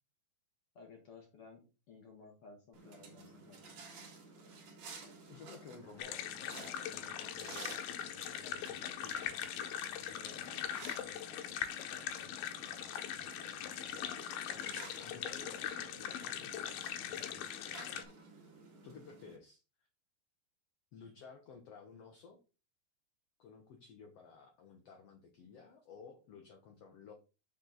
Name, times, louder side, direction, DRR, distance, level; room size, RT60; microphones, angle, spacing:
voice 1, 0.8-1.6 1.9-3.6 10.2-11.5 11.9-12.6 13.0-13.6 16.9-17.4, left 4 dB, 55° left, 2 dB, 1.8 m, -58 dB
sound 1, 2.7-19.4, right 4 dB, 50° right, 3.1 m, -54 dB
voice 2, 5.3-7.7 8.3-9.5 13.4-18.0 18.3-18.4 18.8-19.9 20.9-22.4 23.4-27.1, left 5 dB, 70° left, 4 dB, 1.5 m, -55 dB
sound 2, 6.0-18.0, left 10 dB, 90° left, 2.8 m, -41 dB
6.6 x 6.4 x 4.0 m, 0.30 s
omnidirectional pair, 4.3 m